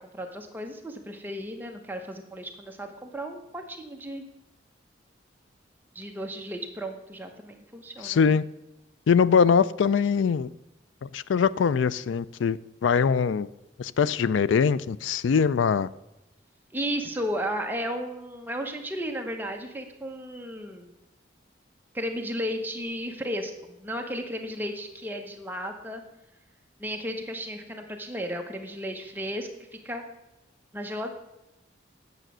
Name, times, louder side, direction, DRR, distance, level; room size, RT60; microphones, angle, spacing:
voice 1, 0.1-4.2 5.9-8.3 16.7-20.9 21.9-26.0 26.8-29.5 29.8-30.0 30.7-31.1, equal, 10° right, 3 dB, 0.9 m, -34 dB
voice 2, 8.0-8.4 9.1-10.5 11.0-13.5 13.8-15.9, left 6 dB, 80° left, 18 dB, 0.4 m, -22 dB
9.1 x 6.9 x 6.1 m, 0.93 s
head